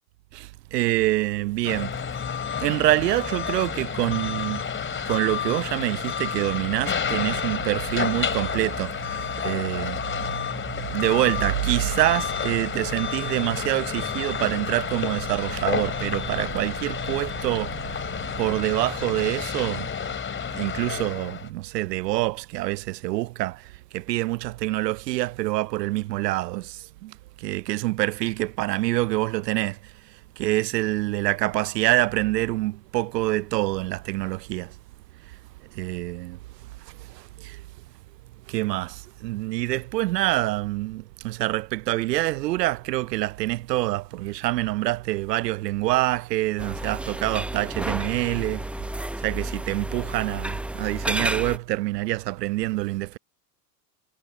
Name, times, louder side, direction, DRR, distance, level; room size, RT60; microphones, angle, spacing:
voice 1, 0.3-1.9 2.6-4.7 5.1-18.0 18.4-19.9 20.5-23.7 23.9-29.8 30.4-34.7 35.7-36.4 37.1-37.6 38.5-48.6 49.2-53.2, right 18 dB, 80° right, 0.6 m, -26 dB
sound 1, 1.6-21.5, left 7 dB, 25° left, 3.4 m, -30 dB
sound 2, 46.6-51.6, right 1 dB, 5° right, 0.7 m, -31 dB
hypercardioid pair, 90°, 48 cm